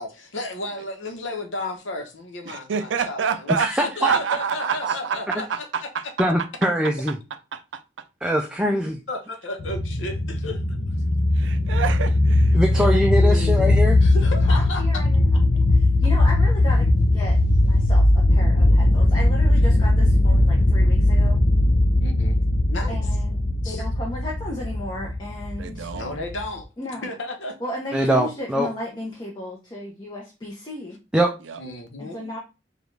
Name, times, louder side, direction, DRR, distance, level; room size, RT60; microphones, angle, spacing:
voice 1, 0.0-5.9 8.7-8.8 9.1-10.6 12.5-12.6 13.2-15.0 22.0-22.4 22.7-23.1 23.6-23.8 25.9-26.7 27.0-27.6 31.6-32.3, left 2 dB, 75° left, 0.9 m, -33 dB
voice 2, 2.5-3.7 4.0-5.2 5.5-6.0 7.5-7.8 11.4-13.0 25.6-26.2 31.5-31.6, right 6 dB, 65° right, 0.4 m, -27 dB
voice 3, 3.6-4.1 6.2-7.2 8.2-9.0 12.5-14.0 27.9-28.7 31.1-31.3, equal, 5° right, 0.4 m, -22 dB
sound 1, 9.6-26.6, left 1 dB, 50° left, 0.6 m, -19 dB
voice 4, 14.5-17.4 17.6-21.4 22.9-25.9 26.8-27.1 27.6-31.0 32.0-32.4, left 1 dB, 25° left, 0.8 m, -35 dB
5.0 x 2.4 x 3.2 m
head